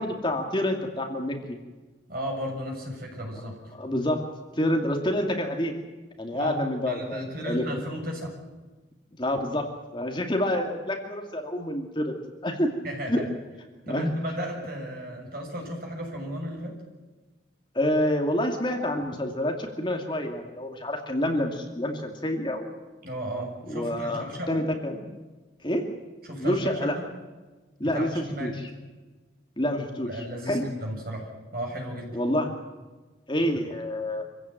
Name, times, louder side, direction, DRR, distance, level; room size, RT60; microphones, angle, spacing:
voice 1, 0.0-1.6 3.7-4.2 4.6-5.7 6.2-7.6 9.2-9.7 9.9-12.1 12.4-12.7 13.1-13.3 13.9-14.1 17.7-22.7 23.7-25.1 25.6-25.9 26.4-26.9 27.8-28.5 29.6-30.1 30.5-30.6 32.1-32.5 33.3-34.2, left 1 dB, 25° left, 3 dB, 2.4 m, -27 dB
voice 2, 2.1-3.5 6.3-6.6 6.9-8.3 12.8-13.2 13.9-16.7 23.0-24.6 26.3-26.8 27.8-28.6 30.0-32.2 34.0-34.1, equal, 50° right, 0 dB, 7.0 m, -34 dB
26.0 x 16.0 x 9.1 m, 1.3 s
head